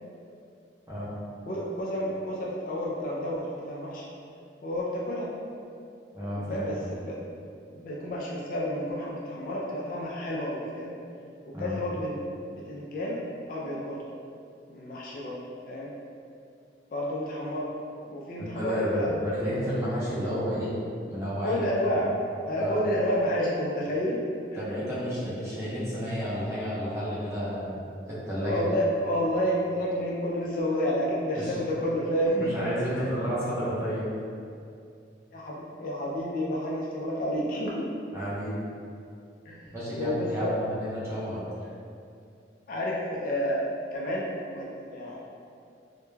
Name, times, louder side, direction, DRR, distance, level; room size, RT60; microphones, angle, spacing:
voice 1, 1.5-4.1 4.6-5.3 6.4-7.2 7.7-10.9 11.5-12.2 12.5-14.0 14.7-15.4 15.6-15.9 16.9-17.7 18.0-19.1 21.4-22.1 22.5-24.2 24.5-24.8 28.4-32.6 32.9-33.1 35.3-37.9 39.5-40.6 41.6-41.7 42.7-43.6 43.9-45.2, equal, 45° left, -4 dB, 0.3 m, -30 dB
voice 2, 6.1-6.8 11.5-11.8 18.4-20.7 21.1-21.6 22.6-22.8 24.6-27.8 28.1-28.6 31.4-31.5 32.4-34.1 38.1-38.6 39.7-41.4, equal, 15° right, -10 dB, 0.6 m, -31 dB
2.2 x 2.1 x 3.1 m, 2.5 s
head